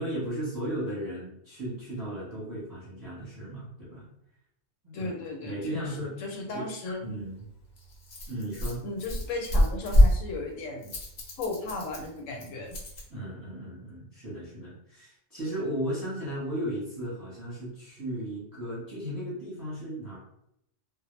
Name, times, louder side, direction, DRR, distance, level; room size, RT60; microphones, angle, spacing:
voice 1, 0.0-4.1 4.8-5.1 5.4-6.1 6.5-6.7 7.0-7.5 8.3-8.8 13.1-20.2, right 1 dB, 20° right, -7 dB, 0.8 m, -35 dB
voice 2, 4.9-7.1 8.8-10.9 11.4-12.8, left 2 dB, 80° left, 2 dB, 1.0 m, -36 dB
Rattle, 7.0-13.1, equal, 50° left, 0.6 m, -27 dB
2.1 x 2.0 x 3.0 m, 0.76 s
omnidirectional pair, 1.3 m